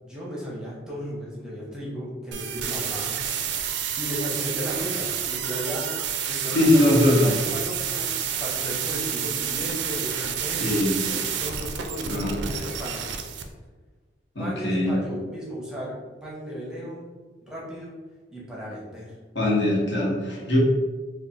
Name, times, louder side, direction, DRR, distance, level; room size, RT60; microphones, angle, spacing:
voice 1, 0.0-3.2 4.0-10.8 11.0-13.2 14.4-16.0 16.2-17.0 17.4-17.9 18.3-19.1 20.4-20.6, equal, 5° right, -6 dB, 0.7 m, -35 dB
sound 1, 2.3-13.4, right 8 dB, 75° right, 0.4 m, -29 dB
voice 2, 6.5-7.3 10.6-11.0 12.1-12.3 14.3-15.0 19.3-20.6, left 1 dB, 75° left, -4 dB, 1.0 m, -21 dB
3.3 x 2.2 x 4.0 m, 1.3 s
head